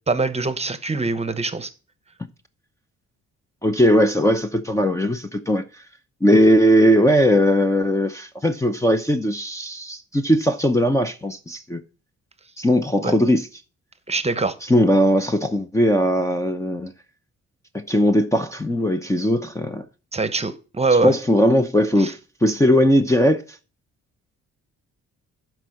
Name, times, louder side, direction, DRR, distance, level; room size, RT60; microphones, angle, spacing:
voice 1, 0.1-1.7 13.0-13.1 14.1-14.6 20.1-21.1 22.0-22.1, right 3 dB, 20° right, 1.0 m, -23 dB
voice 2, 3.6-5.6 6.2-11.8 12.6-13.5 14.6-16.9 17.7-19.8 21.0-23.4, equal, 10° left, 0.8 m, -19 dB
11.5 x 4.6 x 5.8 m
cardioid pair, 90°, 30 cm